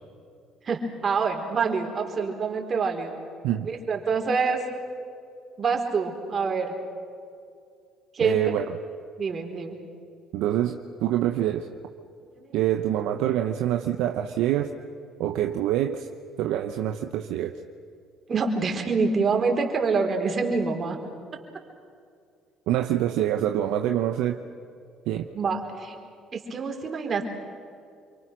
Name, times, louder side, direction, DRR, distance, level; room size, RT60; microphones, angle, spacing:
voice 1, 0.6-3.1 3.6-4.6 5.6-6.7 8.1-8.4 9.2-9.8 12.4-12.5 18.3-21.0 25.3-26.0 26.3-27.2, right 4 dB, 45° right, 2 dB, 4.5 m, -26 dB
voice 2, 8.2-8.7 10.3-11.7 12.5-14.7 15.2-16.1 16.4-17.5 22.7-24.4 25.1-25.3, right 12 dB, 75° right, 5 dB, 0.9 m, -25 dB
28.5 x 24.0 x 6.4 m, 2.3 s
hypercardioid pair, 60°, 0 cm